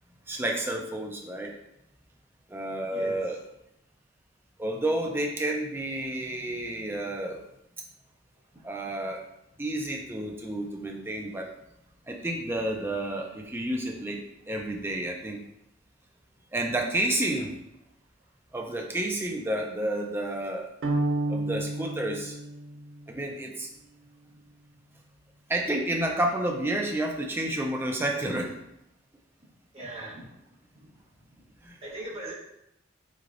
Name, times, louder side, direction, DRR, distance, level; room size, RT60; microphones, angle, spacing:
voice 1, 0.3-1.5 2.5-3.4 4.6-7.4 8.6-9.2 9.6-11.5 12.1-15.4 16.5-17.5 18.5-20.7 21.3-22.4 23.1-23.7 25.5-28.5 31.6-31.8, right 1 dB, 10° right, 1 dB, 0.4 m, -30 dB
sound 1, 20.8-23.1, right 2 dB, 75° right, 0.5 m, -30 dB
voice 2, 29.7-30.3 30.7-30.9 31.8-32.3, right 1 dB, 30° right, -7 dB, 1.0 m, -39 dB
3.7 x 3.2 x 2.5 m, 0.83 s
head